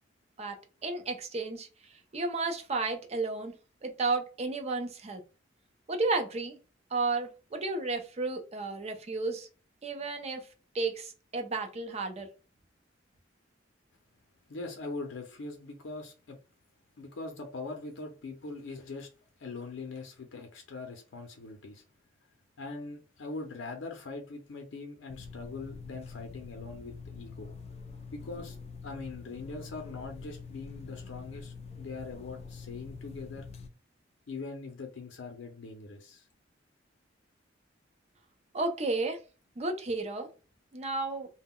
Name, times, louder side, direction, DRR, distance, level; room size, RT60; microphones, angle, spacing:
voice 1, 0.4-1.7 2.1-3.5 3.8-5.2 5.9-6.6 6.9-9.5 9.8-10.5 10.7-12.3 38.5-39.2 39.6-40.3 40.7-41.3, right 3 dB, 35° right, 0.5 m, -32 dB
voice 2, 14.5-16.4 17.0-19.1 19.4-21.8 22.6-27.5 28.1-28.6 28.8-33.5 34.3-36.3, left 3 dB, 90° left, 0.5 m, -42 dB
sound 1, 25.1-33.7, left 5 dB, 35° left, 0.3 m, -45 dB
2.2 x 2.0 x 3.5 m
head